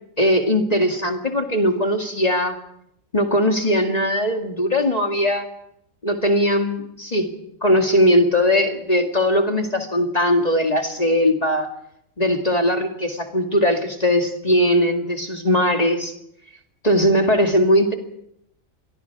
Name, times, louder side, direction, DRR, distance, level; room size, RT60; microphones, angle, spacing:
voice 1, 0.2-2.6 3.1-5.5 6.0-7.3 7.6-11.7 12.2-16.1 16.8-17.9, equal, 30° left, 3 dB, 2.2 m, -19 dB
27.5 x 23.0 x 4.8 m, 0.75 s
omnidirectional pair, 1.4 m